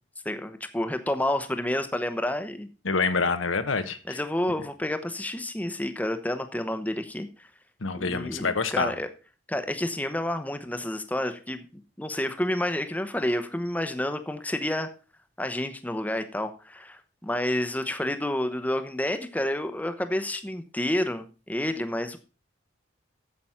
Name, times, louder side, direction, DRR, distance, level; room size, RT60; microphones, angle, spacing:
voice 1, 0.2-2.7 4.1-7.5 8.0-9.1 9.5-11.6 12.0-14.9 15.4-22.2, left 1 dB, 10° left, 8 dB, 0.8 m, -29 dB
voice 2, 2.8-4.2 7.8-8.9, left 4 dB, 85° left, 9 dB, 1.1 m, -27 dB
8.7 x 7.7 x 5.7 m, 0.35 s
head